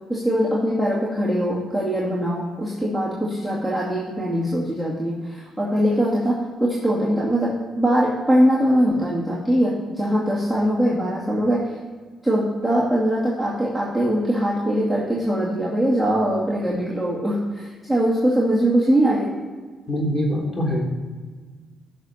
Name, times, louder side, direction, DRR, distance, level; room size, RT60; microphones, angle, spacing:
voice 1, 0.0-11.8 12.2-19.4, equal, 10° left, -6 dB, 2.3 m, -22 dB
voice 2, 19.9-20.8, equal, 25° left, -2 dB, 3.5 m, -23 dB
15.0 x 6.5 x 4.3 m, 1.4 s
cardioid pair, 90°, 0 cm